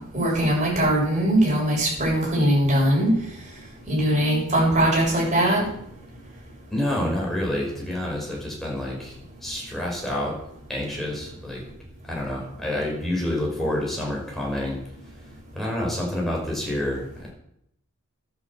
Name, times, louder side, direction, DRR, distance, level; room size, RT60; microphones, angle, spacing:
voice 1, 0.1-3.1 3.9-5.6, right 1 dB, 35° right, -3 dB, 7.8 m, -21 dB
voice 2, 6.7-9.2 9.4-10.4 10.7-11.6 12.1-14.8 15.5-17.3, left 1 dB, ahead, -3 dB, 5.7 m, -28 dB
12.0 x 9.4 x 7.9 m, 0.73 s
head